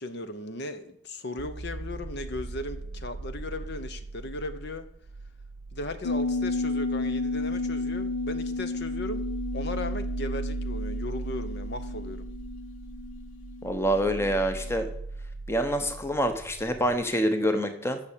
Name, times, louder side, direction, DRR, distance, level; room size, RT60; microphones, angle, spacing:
voice 1, 0.0-4.9 5.7-9.3 9.5-12.3, left 2 dB, 55° left, 10 dB, 0.8 m, -37 dB
sound 1, 1.4-17.0, right 3 dB, 60° right, 0.6 m, -38 dB
sound 2, 6.0-14.3 14.7-14.8, left 3 dB, 90° left, 1.0 m, -32 dB
voice 2, 13.6-14.9 15.5-18.0, equal, 10° left, 7 dB, 0.9 m, -26 dB
8.9 x 6.5 x 8.3 m, 0.68 s
head